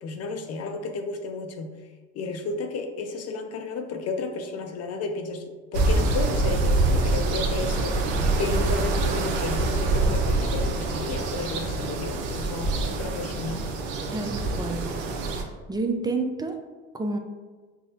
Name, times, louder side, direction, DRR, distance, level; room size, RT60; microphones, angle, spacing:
voice 1, 0.0-1.8 2.1-5.4 5.7-13.7, left 4 dB, 50° left, 5 dB, 0.5 m, -32 dB
sound 1, 5.7-15.4, right 2 dB, 65° right, 0.6 m, -25 dB
voice 2, 14.1-15.0 15.3-16.6 16.9-17.2, right 3 dB, 15° right, 5 dB, 0.4 m, -29 dB
5.5 x 2.0 x 2.7 m, 1.4 s
hypercardioid pair, 70°, 33 cm